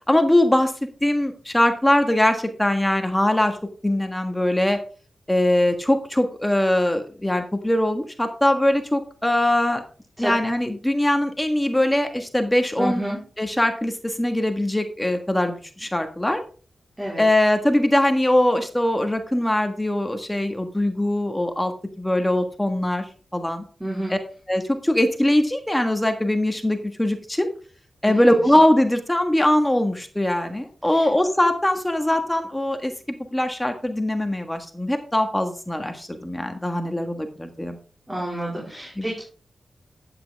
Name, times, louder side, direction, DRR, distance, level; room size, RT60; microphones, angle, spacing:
voice 1, 0.1-0.7 1.0-3.6 3.8-4.8 5.3-9.8 10.2-13.0 13.4-16.4 17.2-21.7 22.0-23.0 23.3-23.6 24.1-24.2 24.5-27.5 28.0-32.9 33.3-37.8 39.0-39.1, left 1 dB, 10° left, 6 dB, 1.5 m, -21 dB
voice 2, 12.8-13.2 17.0-17.2 23.8-24.1 28.1-28.6 30.9-31.1 38.1-39.2, right 1 dB, 20° right, -4 dB, 4.1 m, -29 dB
10.0 x 8.8 x 3.5 m, 0.39 s
cardioid pair, 65°, 0 cm